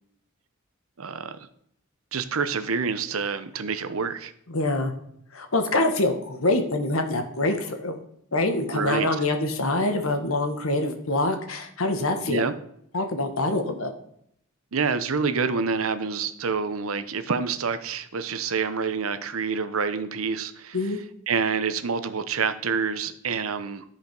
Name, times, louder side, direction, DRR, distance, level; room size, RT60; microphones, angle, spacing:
voice 1, 1.0-1.4 2.1-4.3 8.7-9.1 12.2-12.5 14.7-20.9 21.3-23.8, right 5 dB, 85° right, 11 dB, 0.8 m, -27 dB
voice 2, 4.5-4.9 5.3-7.9 8.3-12.4 12.9-13.9 20.7-21.0, left 2 dB, 85° left, 6 dB, 1.4 m, -25 dB
13.0 x 5.1 x 5.3 m, 0.70 s
head